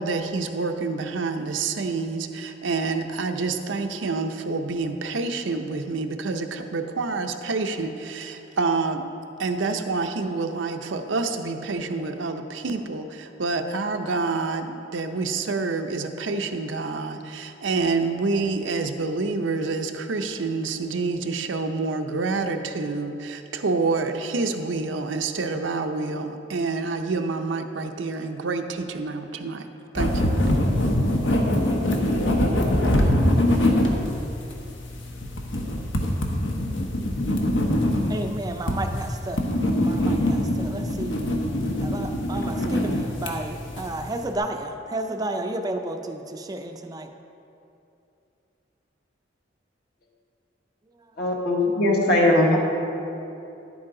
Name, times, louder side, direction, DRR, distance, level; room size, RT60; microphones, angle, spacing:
voice 1, 0.0-9.0 9.4-29.6 29.9-30.3, right 3 dB, 90° right, 6 dB, 0.6 m, -27 dB
sound 1, 30.0-44.2, left 1 dB, 80° left, 1.1 m, -24 dB
voice 2, 38.1-39.4 39.7-41.2 41.8-47.1, right 1 dB, 20° right, 5 dB, 0.4 m, -32 dB
voice 3, 51.2-52.6, left 1 dB, 55° left, -2 dB, 1.5 m, -20 dB
10.5 x 8.7 x 3.8 m, 2.8 s
head